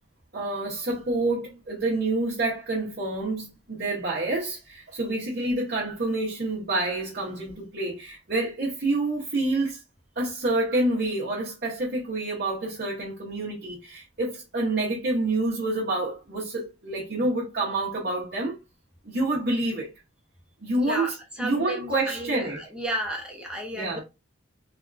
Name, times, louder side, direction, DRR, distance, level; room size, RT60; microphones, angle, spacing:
voice 1, 0.3-9.8 10.2-18.5 19.0-19.9 20.6-22.6 23.7-24.0, right 2 dB, 45° right, 0.9 m, -28 dB
voice 2, 21.4-24.0, equal, 5° right, 0.6 m, -32 dB
3.4 x 2.3 x 2.4 m
head